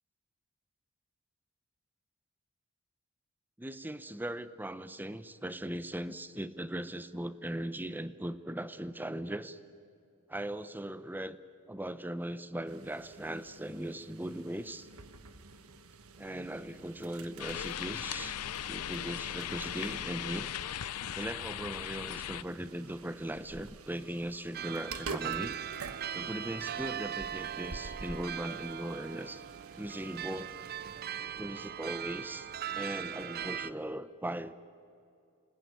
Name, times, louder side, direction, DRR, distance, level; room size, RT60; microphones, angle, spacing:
voice 1, 3.6-9.6 10.3-11.4 11.7-14.9 16.2-18.4 18.6-20.5 21.1-25.6 26.1-29.4 29.8-30.7 31.4-32.5 32.7-34.5, right 1 dB, 10° right, 14 dB, 0.7 m, -39 dB
sound 1, 12.7-31.0, right 4 dB, 70° right, 1.4 m, -49 dB
sound 2, 17.4-22.4, left 10 dB, 85° left, 0.6 m, -38 dB
sound 3, 24.5-33.7, right 9 dB, 45° right, 0.5 m, -39 dB
27.0 x 20.0 x 9.5 m, 2.5 s
head